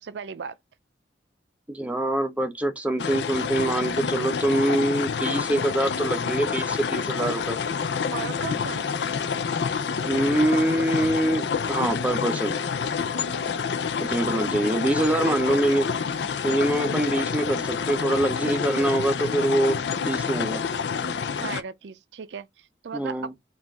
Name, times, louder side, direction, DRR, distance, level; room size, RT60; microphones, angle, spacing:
voice 1, 0.0-0.6 8.1-8.9 14.6-14.7 15.3-15.8 21.4-23.4, right 6 dB, 75° right, 0.4 m, -36 dB
voice 2, 1.7-7.6 10.0-12.6 14.0-15.9 16.4-19.8 20.1-20.6 22.9-23.3, right 1 dB, 10° right, 0.6 m, -24 dB
sound 1, 3.0-21.6, left 6 dB, 75° left, 0.5 m, -28 dB
4.3 x 2.4 x 3.5 m
head